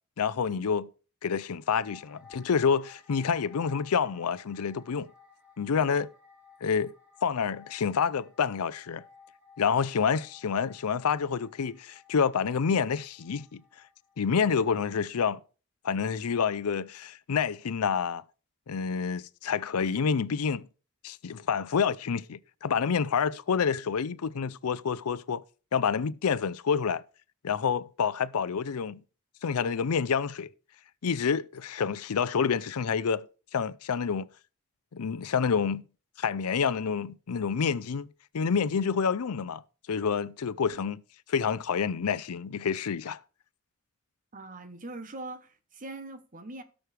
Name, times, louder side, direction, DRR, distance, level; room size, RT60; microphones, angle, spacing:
voice 1, 0.2-0.9 1.2-5.1 5.6-6.1 6.6-6.9 7.2-9.0 9.6-13.6 14.2-15.4 15.8-18.2 18.7-20.7 21.0-25.4 25.7-27.0 27.4-29.0 29.4-30.5 31.0-33.3 33.5-34.3 34.9-35.8 36.2-38.1 38.3-39.6 39.9-41.0 41.3-43.2, left 6 dB, 90° left, 0.5 m, -28 dB
sound 1, 1.8-14.2 14.6-14.7, left 5 dB, 5° right, 2.0 m, -57 dB
voice 2, 44.3-46.6, right 2 dB, 35° right, 1.1 m, -42 dB
17.5 x 6.4 x 3.3 m
head